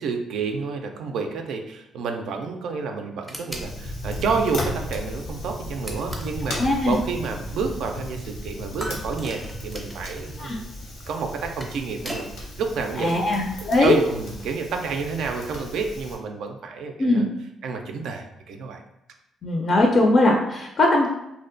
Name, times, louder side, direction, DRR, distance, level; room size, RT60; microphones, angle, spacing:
voice 1, 0.0-10.6 11.1-13.2 13.8-17.3 17.6-18.8, right 5 dB, 75° right, 4 dB, 0.3 m, -29 dB
sound 1, 3.3-3.7 5.8-6.4 8.8-10.2 11.3-12.3, equal, 10° right, 0.5 m, -37 dB
Fire, 3.5-16.2, left 1 dB, 85° left, 0.7 m, -35 dB
voice 2, 6.6-7.0 10.4-10.5 13.0-14.0 17.0-17.3 19.4-21.1, left 2 dB, 50° left, 0 dB, 0.4 m, -20 dB
2.6 x 2.1 x 2.5 m, 0.86 s
cardioid pair, 90°, 0 cm